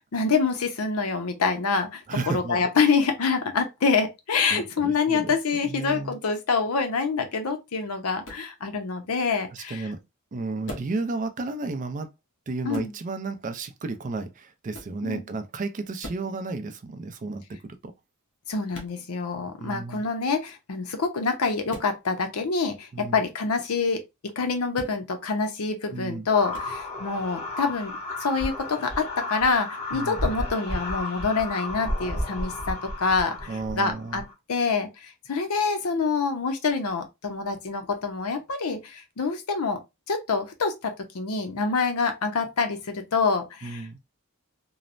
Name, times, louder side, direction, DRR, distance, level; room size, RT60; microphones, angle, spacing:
voice 1, 0.1-9.9 12.6-12.9 15.0-15.2 18.5-24.0 24.4-27.9 28.2-34.2 34.5-39.8 40.1-43.9, left 4 dB, 80° left, 0.6 m, -26 dB
voice 2, 2.1-2.7 4.5-5.3 5.6-6.2 9.5-10.0 10.3-12.1 12.5-17.8 19.6-20.0 22.9-23.2 25.9-26.3 29.9-30.2 33.5-34.2 43.6-44.0, right 3 dB, 35° right, 0.4 m, -33 dB
sound 1, 8.2-8.5 10.6-11.0 12.7-13.0 14.7-15.0 16.0-16.3 18.7-19.0 21.7-21.9 24.7-25.0 26.5-26.7, left 1 dB, 60° left, 1.0 m, -40 dB
sound 2, 26.3-34.3, left 1 dB, 25° left, 1.0 m, -33 dB
3.1 x 2.0 x 2.4 m
head